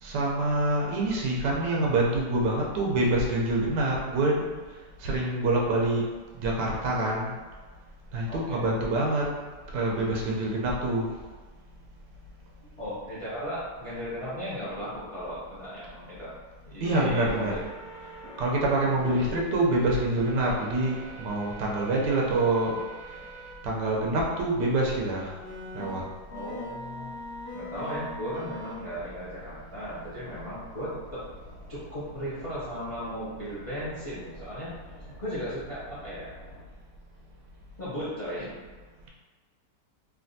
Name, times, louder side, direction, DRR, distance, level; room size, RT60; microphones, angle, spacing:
voice 1, 0.0-4.5 5.0-6.1 6.3-7.3 8.1-9.2 9.7-11.1 16.8-17.6 18.4-22.8 23.6-25.3 25.7-26.0, right 2 dB, 85° right, -2 dB, 1.3 m, -26 dB
voice 2, 8.3-8.7 12.6-16.3 16.7-17.6 26.3-27.1 27.5-31.2 31.7-36.3 37.8-38.6, equal, 55° left, -11 dB, 0.3 m, -36 dB
sound 1, 16.8-19.4 20.2-23.6 24.2-24.3 25.4-36.6, left 1 dB, 85° left, 1.2 m, -44 dB
3.3 x 2.6 x 2.6 m, 1.4 s
omnidirectional pair, 1.8 m